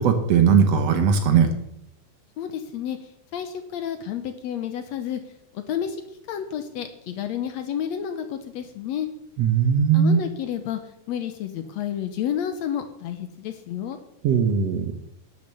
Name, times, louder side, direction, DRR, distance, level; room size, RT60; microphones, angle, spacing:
voice 1, 0.0-1.5 9.4-10.2 14.2-15.0, right 6 dB, 65° right, 7 dB, 1.9 m, -19 dB
voice 2, 2.4-5.2 5.5-6.0 6.3-9.1 9.9-10.8 11.1-14.0, left 9 dB, 70° left, 9 dB, 1.9 m, -30 dB
12.0 x 6.7 x 6.8 m, 0.78 s
omnidirectional pair, 3.6 m